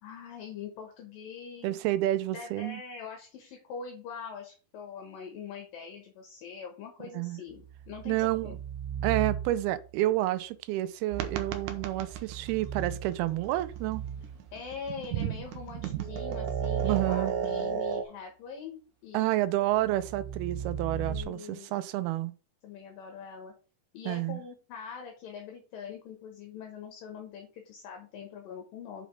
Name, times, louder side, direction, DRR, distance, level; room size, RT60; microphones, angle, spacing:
voice 1, 0.0-1.8 2.3-8.6 14.5-19.3 21.1-21.8 22.6-23.5 23.9-29.1, left 6 dB, 70° left, 2.8 m, -43 dB
voice 2, 1.6-2.8 7.1-7.4 8.1-8.6 9.0-14.0 16.8-17.3 19.1-22.3 24.1-24.4, right 15 dB, 85° right, 2.6 m, -29 dB
sound 1, 7.5-9.9 11.9-14.5 15.2-17.7 19.7-21.2, right 8 dB, 35° right, 1.9 m, -37 dB
sound 2, 11.1-18.0, right 8 dB, 70° right, 2.1 m, -35 dB
6.5 x 5.1 x 5.1 m
omnidirectional pair, 4.4 m